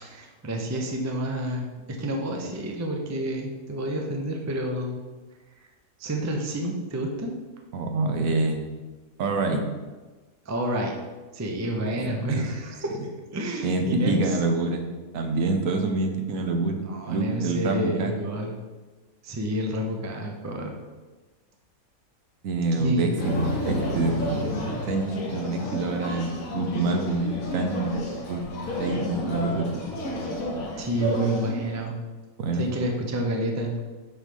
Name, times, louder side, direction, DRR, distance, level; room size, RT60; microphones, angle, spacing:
voice 1, 0.0-5.0 6.0-7.3 10.5-10.9 11.3-13.0 13.3-14.4 16.8-18.5 19.2-20.7 22.8-23.1 30.8-31.9 32.6-33.7, equal, 20° right, 1 dB, 0.4 m, -29 dB
voice 2, 7.7-8.7 9.2-9.7 12.0-12.5 13.6-14.8 15.1-16.8 17.1-18.1 22.4-23.3 23.6-27.9 28.3-28.4 28.8-29.9 32.4-32.6, right 3 dB, 75° right, 4 dB, 1.1 m, -26 dB
sound 1, 23.2-31.8, left 1 dB, 70° left, 1.5 m, -31 dB
7.0 x 3.2 x 5.4 m, 1.3 s
omnidirectional pair, 1.5 m